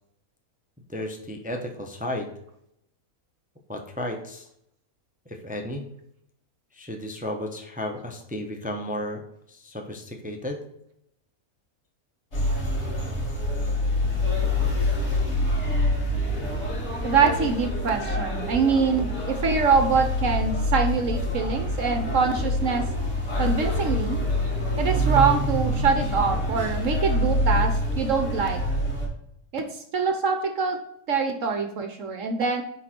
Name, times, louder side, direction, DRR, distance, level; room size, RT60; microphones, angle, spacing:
voice 1, 0.9-2.3 3.7-4.5 5.3-5.8 6.7-9.2 9.5-10.6, left 1 dB, 5° right, 3 dB, 0.8 m, -33 dB
sound 1, 12.3-29.1, left 1 dB, 50° left, 2.7 m, -26 dB
voice 2, 17.0-22.8 23.4-24.2 24.8-28.6 29.5-30.8 31.1-32.6, right 5 dB, 60° right, 6 dB, 1.2 m, -24 dB
9.5 x 4.0 x 4.4 m, 0.76 s
omnidirectional pair, 1.6 m